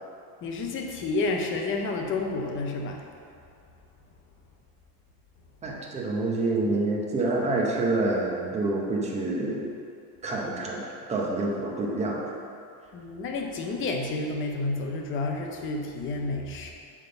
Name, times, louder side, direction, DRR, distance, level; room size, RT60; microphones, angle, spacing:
voice 1, 0.4-3.0 12.9-16.7, left 3 dB, 25° left, 2 dB, 0.6 m, -30 dB
voice 2, 5.6-9.7 10.2-12.4, right 2 dB, 15° right, -2 dB, 0.7 m, -27 dB
9.0 x 3.7 x 6.8 m, 2.4 s
cardioid pair, 175°, 47 cm